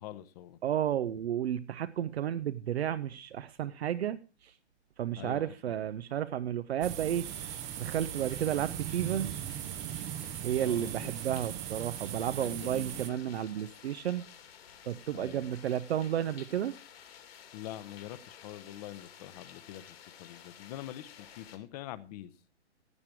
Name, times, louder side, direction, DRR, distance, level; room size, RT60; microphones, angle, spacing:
voice 1, 0.0-0.6 5.2-5.8 10.6-11.4 12.3-13.2 15.1-15.5 17.5-22.3, left 13 dB, 35° left, 1.0 m, -45 dB
voice 2, 0.6-4.5 5.0-7.3 7.8-9.4 10.4-14.2 14.9-16.7, right 10 dB, 65° right, 0.8 m, -32 dB
sound 1, 6.8-13.1, right 12 dB, 20° right, 0.7 m, -39 dB
sound 2, 7.2-21.6, left 9 dB, 60° left, 2.8 m, -53 dB
16.5 x 8.9 x 4.8 m
hypercardioid pair, 135°, 35 cm